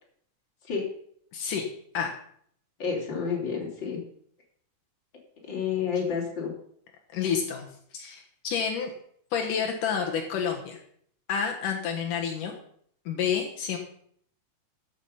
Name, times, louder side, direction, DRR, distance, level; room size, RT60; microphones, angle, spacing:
voice 1, 1.3-1.7 1.9-2.1 7.1-7.7 7.9-8.9 9.3-10.8 11.3-12.5 13.1-13.8, left 7 dB, 75° left, 2 dB, 2.8 m, -29 dB
voice 2, 2.8-4.0 5.5-6.5, left 6 dB, 35° left, -1 dB, 3.7 m, -29 dB
13.5 x 8.1 x 5.7 m, 0.64 s
omnidirectional pair, 3.8 m